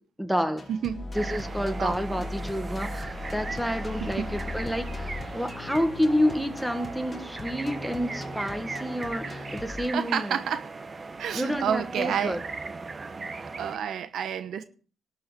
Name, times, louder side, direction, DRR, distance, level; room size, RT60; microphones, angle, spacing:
voice 1, 0.2-0.7 1.1-10.4 11.3-12.4, equal, 5° right, 1.7 m, -29 dB
sound 1, 0.6-9.9, left 2 dB, 25° left, 2.0 m, -38 dB
voice 2, 0.7-1.1 1.8-2.0 4.0-4.3 9.2-9.5 9.9-10.7 11.2-12.4 13.6-14.6, right 8 dB, 70° right, 1.0 m, -30 dB
sound 2, 1.1-13.8, right 3 dB, 30° right, 1.2 m, -38 dB
13.0 x 6.4 x 9.1 m
cardioid pair, 90°, 0 cm